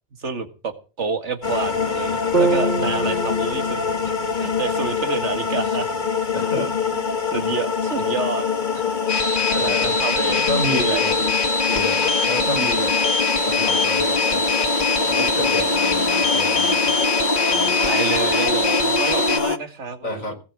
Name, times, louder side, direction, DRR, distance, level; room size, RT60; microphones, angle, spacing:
voice 1, 0.2-5.9 6.9-7.0 7.3-8.5 8.7-8.8 9.1-11.3 17.9-20.3, right 4 dB, 60° right, 9 dB, 2.1 m, -29 dB
sound 1, 1.4-19.6, left 4 dB, 40° left, 1.3 m, -24 dB
sound 2, 2.3-6.4, right 3 dB, 40° right, 2.7 m, -27 dB
voice 2, 2.8-3.2 6.3-6.7 9.4-11.2 11.7-13.0 13.5-14.5 15.0-17.0 17.5-17.9 20.0-20.3, left 1 dB, 85° left, 6 dB, 5.4 m, -30 dB
sound 3, 9.1-19.4, left 4 dB, 55° left, 1.9 m, -23 dB
19.0 x 7.0 x 8.7 m, 0.35 s
omnidirectional pair, 1.4 m